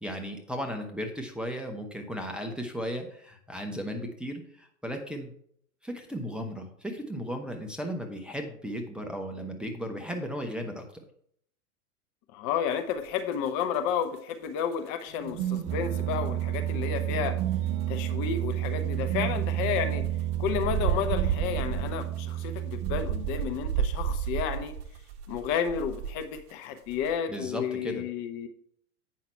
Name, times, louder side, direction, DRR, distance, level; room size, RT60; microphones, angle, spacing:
voice 1, 0.0-5.3 5.8-11.0 27.3-28.0, equal, ahead, 2 dB, 0.9 m, -35 dB
voice 2, 12.3-17.4 17.9-20.0 20.4-24.7 25.3-28.5, left 8 dB, 40° left, 7 dB, 0.9 m, -31 dB
sound 1, 13.0-15.4 15.7-16.1 16.4-16.5 16.7-16.8 17.3-17.4 17.5-17.6 18.0-26.5 26.8-27.1, right 8 dB, 45° right, 1.3 m, -33 dB
sound 2, 15.2-24.0, right 13 dB, 20° right, 0.4 m, -31 dB
8.4 x 5.8 x 4.4 m, 0.65 s
hypercardioid pair, 105°, 45 cm